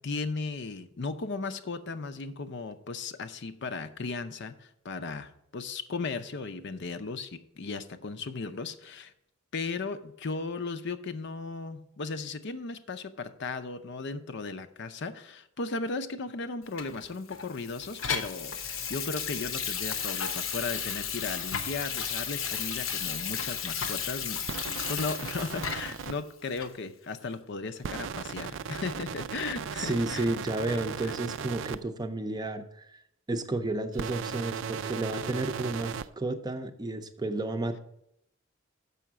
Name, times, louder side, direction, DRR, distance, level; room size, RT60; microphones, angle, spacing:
voice 1, 0.0-9.1 9.5-24.5 24.9-30.3 31.0-31.1, left 4 dB, 60° left, 10 dB, 0.6 m, -36 dB
Water tap faucet / Sink (filling or washing), 16.8-26.1 26.6-26.7, left 7 dB, 80° left, 1.0 m, -34 dB
sound 1, 24.5-26.1 27.8-31.8 33.9-36.1, right 7 dB, 65° right, 0.4 m, -37 dB
voice 2, 29.8-33.0 33.3-37.8, right 2 dB, 20° right, 8 dB, 0.6 m, -32 dB
6.9 x 5.7 x 7.4 m, 0.77 s
head